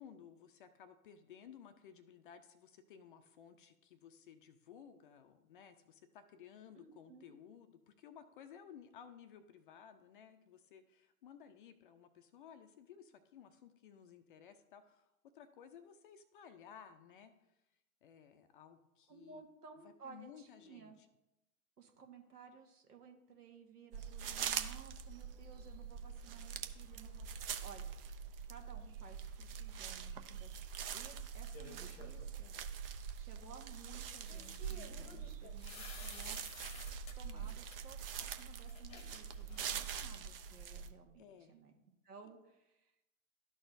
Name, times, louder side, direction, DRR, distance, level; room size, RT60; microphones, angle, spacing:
voice 1, 0.0-15.1 15.3-17.6 18.0-19.4 19.8-21.1 35.0-35.4 37.3-37.6 41.2-41.6, left 8 dB, 35° left, 8 dB, 0.5 m, -57 dB
voice 2, 6.8-7.4 19.1-21.0 21.8-27.9 28.5-30.5 30.9-32.5 33.2-36.4 37.2-41.8 42.0-42.9, right 5 dB, 75° right, 3 dB, 1.6 m, -57 dB
sound 1, 23.9-40.9, right 7 dB, 40° right, 0.6 m, -44 dB
sound 2, 31.5-32.3 34.3-37.1 37.5-37.8 38.3-38.4 38.7-39.9, left 2 dB, 15° left, 1.0 m, -53 dB
12.5 x 4.2 x 2.6 m, 0.91 s
figure-of-eight pair, 115°, 47 cm